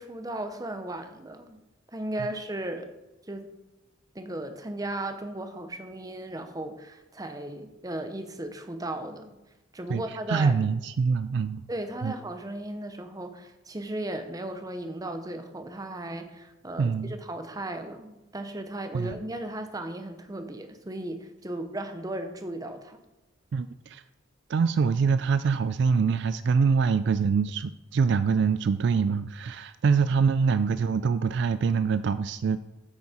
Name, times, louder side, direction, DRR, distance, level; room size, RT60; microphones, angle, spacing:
voice 1, 0.0-1.6 1.9-2.9 3.3-3.5 4.1-9.3 9.7-10.5 11.7-23.0, right 1 dB, 20° right, 8 dB, 0.8 m, -36 dB
voice 2, 9.9-11.6 12.0-12.1 16.8-17.1 18.9-19.2 23.5-24.0 24.5-32.6, right 5 dB, 60° right, 13 dB, 0.3 m, -25 dB
8.6 x 8.1 x 4.3 m, 1.0 s
head